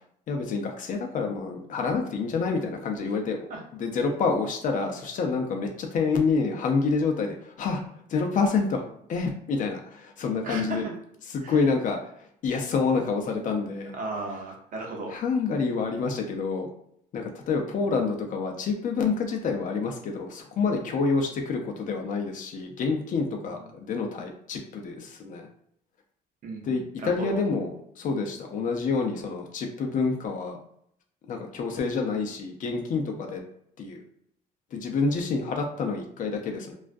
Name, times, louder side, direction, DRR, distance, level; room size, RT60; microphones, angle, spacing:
voice 1, 0.3-3.5 3.8-7.8 8.1-10.8 11.3-12.0 12.4-13.9 15.1-16.7 17.1-25.5 26.6-30.6 31.3-33.4 33.8-34.0 34.7-36.7, left 4 dB, 50° left, 3 dB, 0.5 m, -28 dB
voice 2, 10.4-10.9 11.4-11.7 13.9-15.1 23.4-23.5 26.4-27.4, right 2 dB, 55° right, 0 dB, 0.7 m, -35 dB
2.3 x 2.1 x 2.5 m, 0.69 s
cardioid pair, 110°, 17 cm